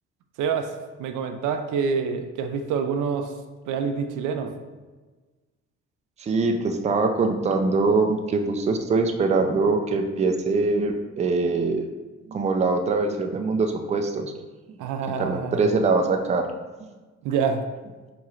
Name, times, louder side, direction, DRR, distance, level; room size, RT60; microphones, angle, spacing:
voice 1, 0.4-3.3 3.7-4.5 14.8-15.7 17.2-17.7, right 6 dB, 85° right, 7 dB, 0.4 m, -27 dB
voice 2, 6.2-11.9 12.3-14.3 15.2-16.4, right 3 dB, 25° right, 5 dB, 0.4 m, -23 dB
4.2 x 3.0 x 2.4 m, 1.3 s
cardioid pair, 90°, 30 cm